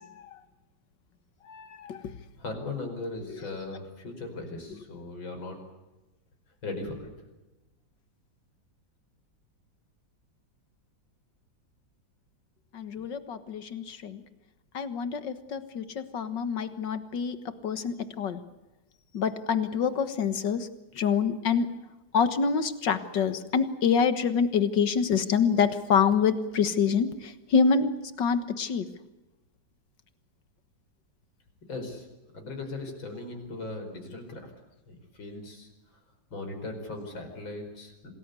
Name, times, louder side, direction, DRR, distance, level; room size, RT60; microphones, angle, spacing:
voice 1, 1.5-2.0 12.7-14.2 14.7-17.4 17.6-18.4 19.1-20.7 21.0-21.7 22.1-27.1 27.5-28.9, left 6 dB, 65° left, 11 dB, 2.1 m, -26 dB
voice 2, 2.4-5.6 6.6-7.1 31.7-32.1 32.3-34.5 34.9-35.7 36.3-38.1, left 2 dB, 85° left, 4 dB, 5.7 m, -38 dB
27.0 x 19.5 x 8.3 m, 1.1 s
omnidirectional pair, 2.1 m